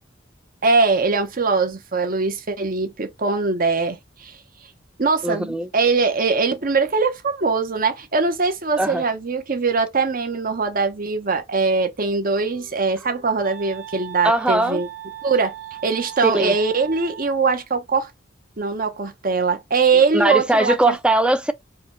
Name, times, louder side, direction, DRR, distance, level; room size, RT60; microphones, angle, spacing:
voice 1, 0.6-4.4 5.0-14.9 15.2-15.5 15.8-18.1 18.6-21.0, right 4 dB, 45° right, 1.0 m, -21 dB
voice 2, 5.2-5.7 8.8-9.0 14.2-14.8 16.2-16.6 19.9-21.5, right 1 dB, 5° right, 0.5 m, -20 dB
Wind instrument woodwind instrument, 12.2-17.5, right 12 dB, 80° right, 2.1 m, -39 dB
4.9 x 2.3 x 3.0 m
head